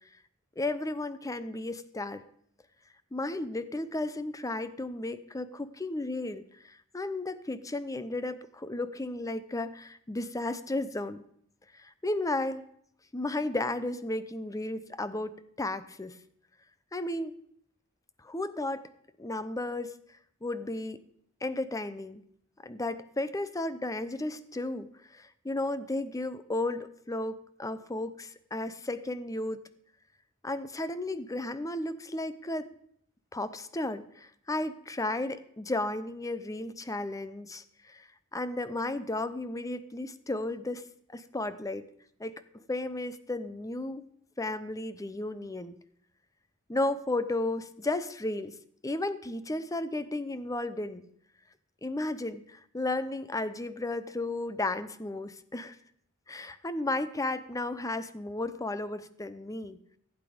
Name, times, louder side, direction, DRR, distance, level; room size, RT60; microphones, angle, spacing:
voice 1, 0.6-2.2 3.1-11.2 11.8-12.6 13.1-16.2 16.9-17.4 18.2-18.9 19.2-19.9 20.4-21.0 21.4-22.2 22.6-29.6 30.4-32.7 33.3-40.8 41.1-41.9 42.2-42.3 42.7-44.0 44.4-45.8 46.7-48.5 48.8-51.1 51.8-55.8 56.3-60.0, left 2 dB, 15° left, 14 dB, 0.6 m, -34 dB
15.0 x 8.2 x 5.1 m, 0.67 s
head